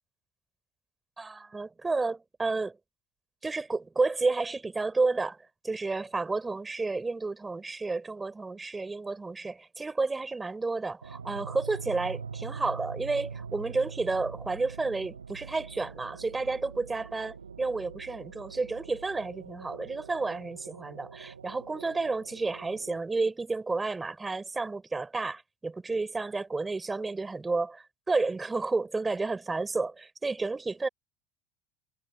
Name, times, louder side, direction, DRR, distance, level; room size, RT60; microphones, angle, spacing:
voice 1, 1.2-2.8 3.4-5.4 5.6-30.9, right 3 dB, 15° right, 4.7 m, -31 dB
sound 1, 11.0-23.0, right 5 dB, 90° right, 1.0 m, -43 dB
hypercardioid pair, 70°, 0 cm